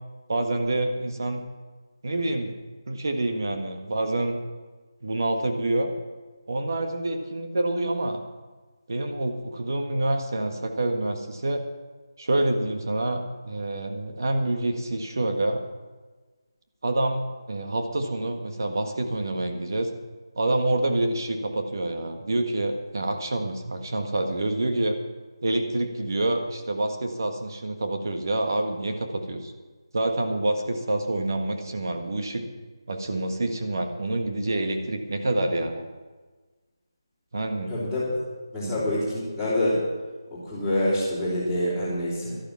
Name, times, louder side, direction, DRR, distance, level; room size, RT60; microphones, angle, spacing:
voice 1, 0.3-1.4 2.0-2.5 2.9-4.4 5.0-5.9 6.5-8.2 8.9-11.6 12.2-15.6 16.8-17.2 17.5-19.9 20.3-24.9 25.4-29.5 29.9-32.4 32.9-35.8 37.3-37.8 38.6-38.7, right 2 dB, 45° right, 5 dB, 1.6 m, -27 dB
voice 2, 37.7-38.1 38.5-39.8 40.3-42.4, left 1 dB, ahead, -14 dB, 3.1 m, -26 dB
12.0 x 12.0 x 5.8 m, 1.3 s
figure-of-eight pair, 175°, 2 cm